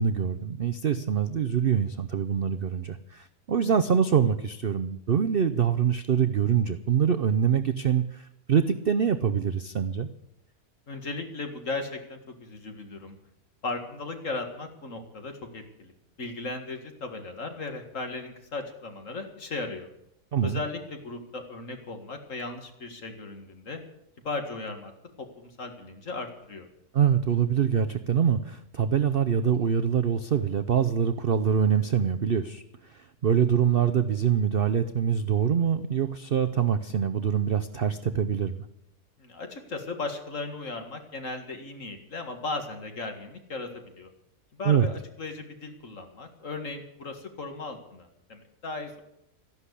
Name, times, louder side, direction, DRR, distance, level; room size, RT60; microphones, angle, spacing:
voice 1, 0.0-10.1 20.3-20.6 26.9-32.6 32.9-38.6 44.6-44.9, right 7 dB, 55° right, 9 dB, 0.6 m, -24 dB
voice 2, 10.9-13.1 13.6-19.9 20.4-23.8 24.2-24.9 25.2-26.7 39.2-44.1 44.5-49.0, left 3 dB, 50° left, 5 dB, 2.2 m, -36 dB
14.0 x 11.5 x 8.3 m, 0.82 s
omnidirectional pair, 1.8 m